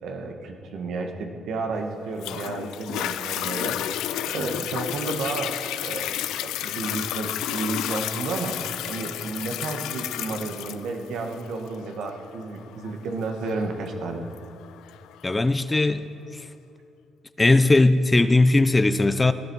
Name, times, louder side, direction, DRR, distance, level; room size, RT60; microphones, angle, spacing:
voice 1, 0.0-4.0 4.3-8.6 8.9-14.2, right 3 dB, 75° right, 3 dB, 1.5 m, -32 dB
Toilet flush, 2.2-15.2 15.8-15.9, left 12 dB, 90° left, 0.4 m, -32 dB
voice 2, 15.2-16.0 17.4-19.3, left 2 dB, 20° left, 12 dB, 0.5 m, -18 dB
18.0 x 12.0 x 4.7 m, 2.6 s
cardioid pair, 90°, 0 cm